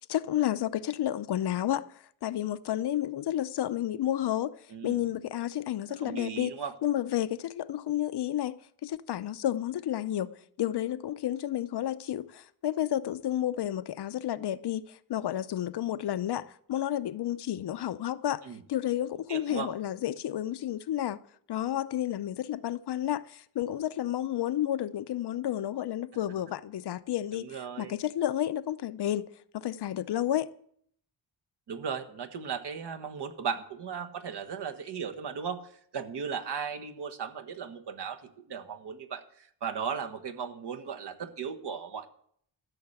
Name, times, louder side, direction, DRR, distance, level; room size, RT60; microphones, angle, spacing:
voice 1, 0.0-1.8 2.2-4.5 4.8-6.5 6.8-10.3 10.6-18.4 18.7-21.2 21.5-27.5 27.8-29.3 29.5-30.5, left 12 dB, 60° left, 0.6 m, -31 dB
voice 2, 6.0-6.7 18.4-18.6 19.3-19.7 27.3-27.9 31.7-38.2 38.5-42.1, right 6 dB, 60° right, 1.4 m, -36 dB
14.0 x 6.7 x 8.8 m
wide cardioid pair, 145°, 46 cm